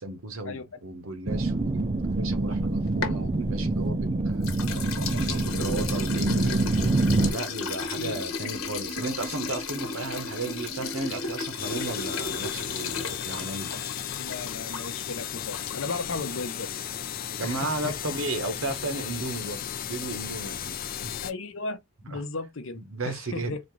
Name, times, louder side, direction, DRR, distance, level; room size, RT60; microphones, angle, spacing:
voice 1, 0.0-4.5 5.1-6.5 7.2-13.7 17.4-20.8 21.0-21.1 22.1-22.2 22.7-23.5, right 2 dB, 70° right, 1.0 m, -34 dB
sound 1, 1.3-7.3, right 2 dB, 30° right, 0.5 m, -26 dB
sound 2, 2.4-4.0 4.4-16.2, left 4 dB, 80° left, 1.1 m, -35 dB
voice 2, 7.9-8.3 14.2-16.8 17.4-17.9 21.2-21.8 22.1-23.6, left 3 dB, 65° left, 0.8 m, -35 dB
sound 3, 11.6-21.3, left 9 dB, 45° left, 0.4 m, -35 dB
4.1 x 2.5 x 3.2 m
head